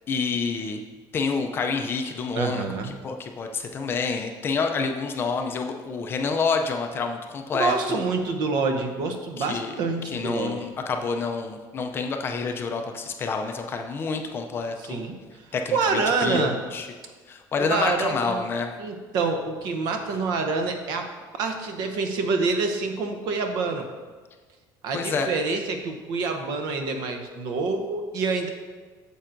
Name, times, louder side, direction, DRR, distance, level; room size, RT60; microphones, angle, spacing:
voice 1, 0.1-0.8 1.1-8.0 9.4-9.7 10.1-15.0 15.5-16.9 17.3-18.7 24.9-25.3, left 4 dB, 25° left, 4 dB, 0.4 m, -28 dB
voice 2, 2.3-2.9 7.5-10.6 14.8-15.2 15.7-16.6 17.6-18.4 18.8-21.1 21.4-23.9 24.8-28.5, right 4 dB, 55° right, 5 dB, 0.8 m, -26 dB
8.7 x 7.0 x 2.6 m, 1.4 s
cardioid pair, 180°, 9 cm